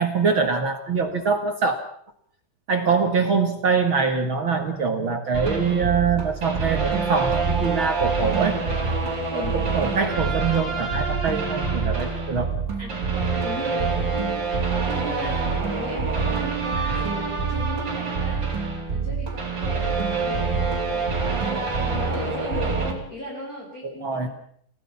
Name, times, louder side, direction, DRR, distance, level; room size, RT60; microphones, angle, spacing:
voice 1, 0.0-1.8 2.7-8.6 9.3-12.5 23.8-24.3, right 5 dB, 50° right, 6 dB, 1.6 m, -24 dB
sound 1, 5.3-22.9, right 4 dB, 30° right, 4.4 m, -26 dB
voice 2, 9.3-9.7 12.8-14.4 14.8-18.5 18.9-21.5 21.8-24.3, equal, 20° left, -4 dB, 6.2 m, -37 dB
29.5 x 17.0 x 5.8 m, 0.64 s
omnidirectional pair, 4.6 m